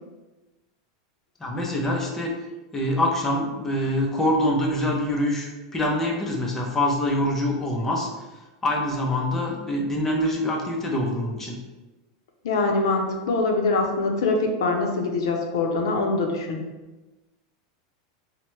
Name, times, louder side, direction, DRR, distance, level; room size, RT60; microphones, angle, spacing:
voice 1, 1.4-2.4 2.7-8.1 8.6-11.6, left 1 dB, 15° left, -1 dB, 0.6 m, -25 dB
voice 2, 12.4-16.6, left 3 dB, 85° left, 2 dB, 0.6 m, -23 dB
4.4 x 2.1 x 3.0 m, 1.1 s
supercardioid pair, 140°, 2 cm